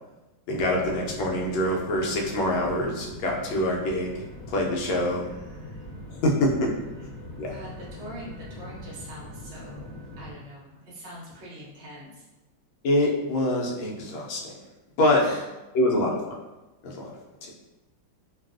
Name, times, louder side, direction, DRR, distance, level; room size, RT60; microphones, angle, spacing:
voice 1, 0.5-5.3 6.1-6.7 7.4-7.5 12.8-14.5 15.0-15.2 15.7-16.3 16.8-17.1 17.4-17.5, left 1 dB, 80° left, -1 dB, 1.3 m, -25 dB
sound 1, 0.6-10.3, left 1 dB, 5° left, 0.9 m, -42 dB
voice 2, 5.2-5.8 7.5-9.8 10.2-12.2 15.1-15.4, equal, 50° right, -6 dB, 0.6 m, -43 dB
3.3 x 2.3 x 2.4 m, 1.1 s
omnidirectional pair, 2.2 m